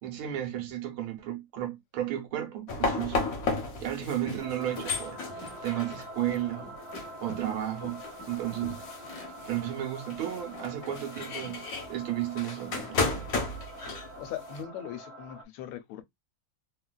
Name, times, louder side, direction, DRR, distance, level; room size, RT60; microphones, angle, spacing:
voice 1, 0.0-3.2 3.8-6.8 7.2-8.8 9.5-13.3, right 12 dB, 80° right, 1.8 m, -33 dB
sound 1, 2.7-14.6, left 3 dB, 55° left, 1.1 m, -34 dB
sound 2, 4.4-15.4, equal, 50° right, 0.8 m, -45 dB
voice 2, 14.2-16.0, left 10 dB, 85° left, 1.5 m, -39 dB
3.8 x 2.4 x 2.2 m
omnidirectional pair, 2.3 m